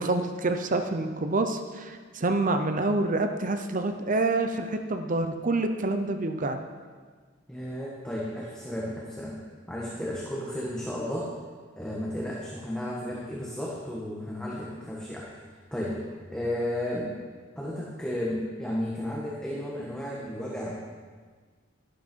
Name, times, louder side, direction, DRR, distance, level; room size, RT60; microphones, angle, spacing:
voice 1, 0.0-6.6, right 2 dB, 45° right, 7 dB, 0.8 m, -27 dB
voice 2, 7.5-9.4 9.7-11.3 11.8-15.3 15.7-17.1 17.6-20.8, left 1 dB, 5° left, -5 dB, 1.6 m, -33 dB
13.0 x 11.5 x 4.6 m, 1.5 s
head